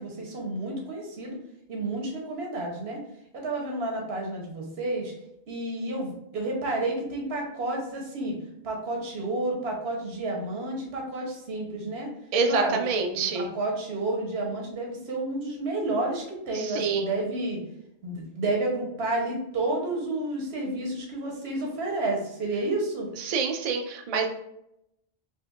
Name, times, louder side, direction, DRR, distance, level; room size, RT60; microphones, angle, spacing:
voice 1, 0.0-1.4 1.7-3.0 3.3-5.1 5.5-8.3 8.6-12.1 12.5-12.8 13.1-17.6 18.0-23.1, right 2 dB, 80° right, 0 dB, 1.2 m, -30 dB
voice 2, 12.3-13.5 16.5-17.2 23.2-24.3, right 4 dB, 55° right, 4 dB, 0.4 m, -27 dB
4.3 x 2.8 x 2.4 m, 0.80 s
omnidirectional pair, 1.1 m